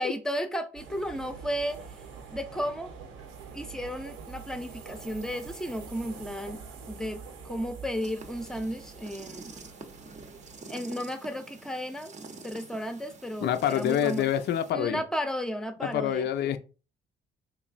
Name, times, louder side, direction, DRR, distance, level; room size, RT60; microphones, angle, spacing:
voice 1, 0.0-1.8 2.3-2.9 3.5-9.5 10.7-12.1 12.4-14.3 14.7-16.3, equal, 5° left, 0.6 m, -34 dB
sound 1, 0.7-10.6, right 5 dB, 85° right, 0.8 m, -45 dB
sound 2, 8.0-14.7, right 3 dB, 35° right, 0.6 m, -47 dB
voice 2, 13.4-15.0 15.8-16.6, left 10 dB, 60° left, 0.4 m, -27 dB
3.5 x 3.0 x 2.5 m
cardioid pair, 90°, 20 cm